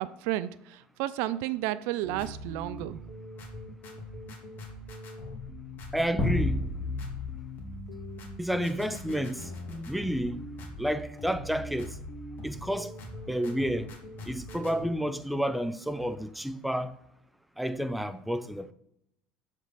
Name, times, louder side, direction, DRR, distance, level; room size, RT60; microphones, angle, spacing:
voice 1, 0.0-3.0, right 14 dB, 70° right, 0.4 m, -32 dB
sound 1, 2.0-14.8, left 1 dB, 45° left, 2.2 m, -42 dB
voice 2, 5.9-6.6 8.4-9.5 9.9-10.5 10.8-12.0 12.4-12.9 13.3-13.9 14.3-17.0 17.6-18.7, equal, ahead, 0.5 m, -30 dB
sound 2, 6.2-8.8, left 2 dB, 15° left, 1.9 m, -31 dB
7.4 x 5.2 x 4.1 m
supercardioid pair, 95°, 4 cm